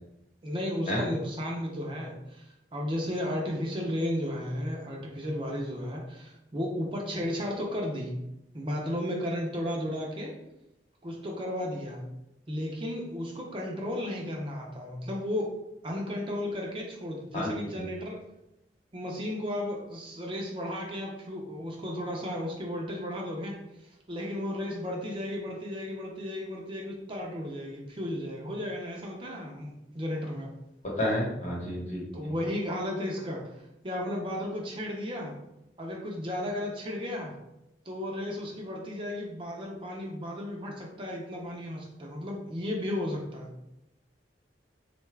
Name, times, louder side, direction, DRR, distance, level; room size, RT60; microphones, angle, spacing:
voice 1, 0.4-8.2 8.5-10.3 11.0-12.0 12.5-15.5 15.8-18.2 18.9-30.5 32.1-33.5 33.8-35.4 35.8-37.4 37.9-43.5, left 1 dB, 30° right, -1 dB, 0.5 m, -34 dB
voice 2, 17.3-17.8 31.0-32.3, left 1 dB, 40° left, -3 dB, 1.0 m, -31 dB
3.9 x 2.3 x 3.2 m, 0.86 s
head